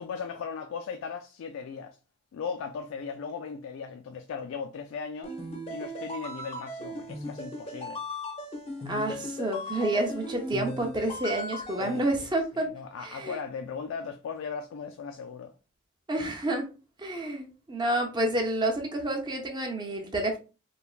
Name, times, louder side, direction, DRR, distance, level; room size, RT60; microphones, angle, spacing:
voice 1, 0.0-2.0 2.3-5.3 5.7-8.0 11.8-12.3 12.5-15.5, left 6 dB, 85° left, 0.3 m, -37 dB
sound 1, 5.2-12.1, left 1 dB, 30° left, 0.6 m, -37 dB
voice 2, 8.9-12.7 13.0-13.4 16.1-16.7 17.0-20.4, right 1 dB, 20° right, 0.5 m, -29 dB
3.2 x 2.2 x 2.4 m
head